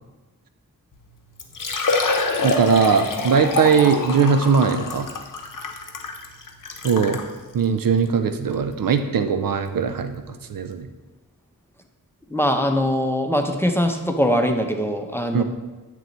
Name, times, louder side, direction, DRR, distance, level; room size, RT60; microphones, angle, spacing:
Liquid, 0.9-1.0 1.4-7.3 8.0-8.1 8.5-8.6 10.3-10.4 10.5-10.6, left 3 dB, 60° left, 0.7 m, -26 dB
voice 1, 2.4-5.1 6.8-7.2 7.5-10.2 10.5-10.9 15.3-15.4, right 6 dB, 70° right, 9 dB, 0.5 m, -20 dB
voice 2, 12.3-15.4, equal, 5° left, 4 dB, 0.6 m, -22 dB
9.1 x 3.1 x 3.9 m, 1.2 s
wide cardioid pair, 50°, 36 cm